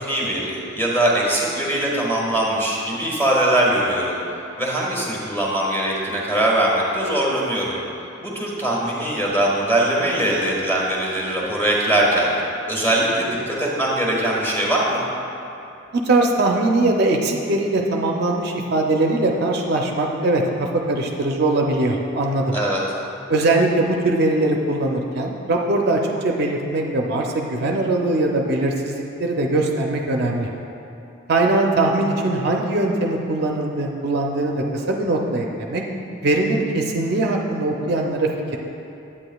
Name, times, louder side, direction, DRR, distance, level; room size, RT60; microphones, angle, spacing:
voice 1, 0.0-4.2 4.6-7.8 8.2-12.3 12.7-15.0 22.5-22.8, right 1 dB, 10° left, -4 dB, 1.3 m, -21 dB
voice 2, 15.9-22.6 23.3-30.5 31.3-35.8 36.2-38.6, right 2 dB, 50° right, 1 dB, 0.5 m, -21 dB
9.7 x 8.6 x 2.3 m, 2.8 s
head